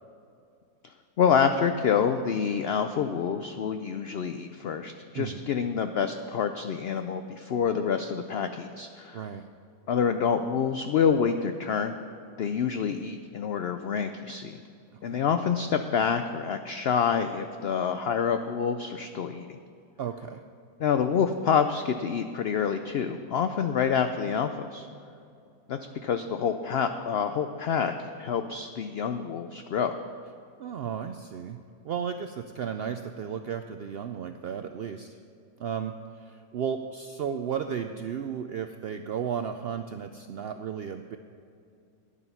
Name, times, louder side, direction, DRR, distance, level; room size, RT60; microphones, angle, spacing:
voice 1, 1.2-9.2 9.9-12.0 12.4-14.5 15.0-19.6 20.8-24.9 25.7-29.9, left 7 dB, 70° left, 8 dB, 0.6 m, -27 dB
voice 2, 9.1-9.4 14.9-15.2 20.0-20.4 30.6-31.6 31.8-35.2 35.6-41.2, right 7 dB, 90° right, 7 dB, 0.5 m, -34 dB
12.5 x 10.0 x 5.6 m, 2.5 s
omnidirectional pair, 1.6 m